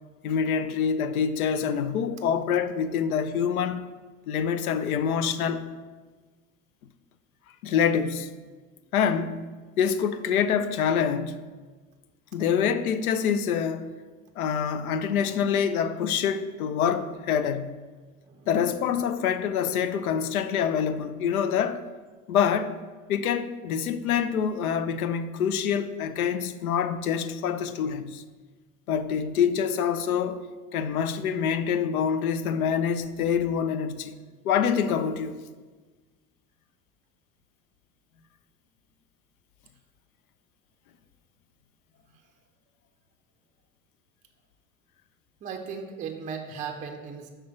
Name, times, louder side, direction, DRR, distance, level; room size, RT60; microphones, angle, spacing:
voice 1, 0.2-3.9 4.3-5.7 7.6-8.3 8.9-9.4 9.8-11.4 12.3-13.9 14.4-17.8 18.5-21.8 22.3-22.8 23.1-28.2 28.9-30.4 30.7-34.1 34.4-35.4, left 7 dB, 70° left, 0.5 m, -26 dB
voice 2, 18.2-18.9 42.1-42.2 45.4-47.3, right 6 dB, 20° right, 0.5 m, -37 dB
6.1 x 3.3 x 5.7 m
figure-of-eight pair, 70°, 45 cm